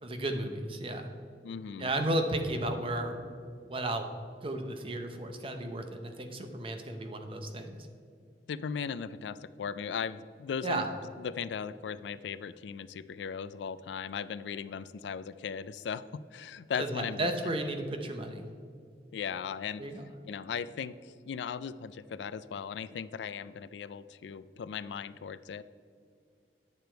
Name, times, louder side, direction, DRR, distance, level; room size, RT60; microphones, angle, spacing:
voice 1, 0.0-1.1 1.8-3.3 3.6-4.1 4.4-7.9 10.6-10.9 16.8-18.5 19.8-20.1, right 1 dB, 30° right, 6 dB, 0.8 m, -34 dB
voice 2, 1.4-1.9 8.5-10.9 11.2-17.3 19.1-19.8 20.3-25.6, left 6 dB, 85° left, 15 dB, 0.4 m, -38 dB
9.7 x 6.8 x 4.5 m, 2.3 s
head